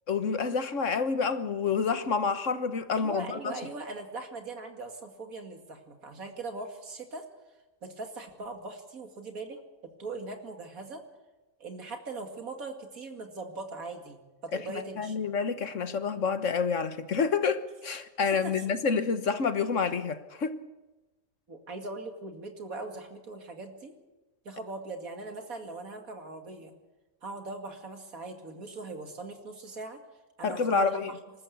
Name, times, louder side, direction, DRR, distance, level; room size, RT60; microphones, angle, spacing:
voice 1, 0.1-3.5 15.0-20.6 30.4-31.1, left 5 dB, 65° left, 1.5 m, -28 dB
voice 2, 3.0-7.2 7.8-9.6 10.0-11.0 11.6-15.3 18.3-18.5 21.5-23.9 24.4-26.7 27.2-30.0 30.4-31.1, right 3 dB, 85° right, 2.8 m, -40 dB
26.0 x 13.5 x 8.3 m
omnidirectional pair, 1.4 m